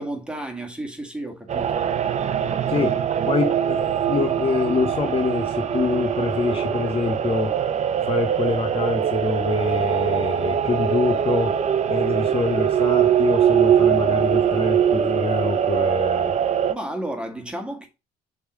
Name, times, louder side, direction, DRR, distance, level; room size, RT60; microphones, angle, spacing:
voice 1, 0.0-1.8 16.7-17.9, right 1 dB, 5° right, 1.9 m, -32 dB
sound 1, 1.5-16.7, right 9 dB, 40° right, 0.9 m, -22 dB
voice 2, 2.7-3.0 3.3-7.5 8.0-11.5 11.9-16.4, left 4 dB, 35° left, 1.0 m, -25 dB
7.0 x 3.7 x 6.2 m
cardioid pair, 110°, 17 cm